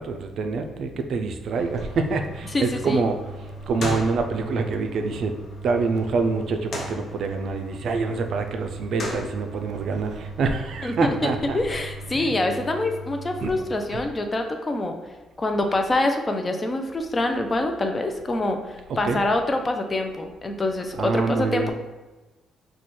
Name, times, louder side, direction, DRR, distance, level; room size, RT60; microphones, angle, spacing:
voice 1, 0.0-3.2 3.7-5.4 5.6-11.6 12.1-12.3 13.4-13.5 13.9-14.0 19.0-19.2 21.0-21.7, right 4 dB, 65° right, 6 dB, 0.3 m, -26 dB
sound 1, 1.6-13.6, equal, 60° left, 0.7 m, -37 dB
voice 2, 2.5-3.1 10.8-14.9 15.4-21.7, left 2 dB, 25° left, 5 dB, 0.4 m, -25 dB
3.0 x 2.3 x 4.1 m, 1.2 s
cardioid pair, 90°, 0 cm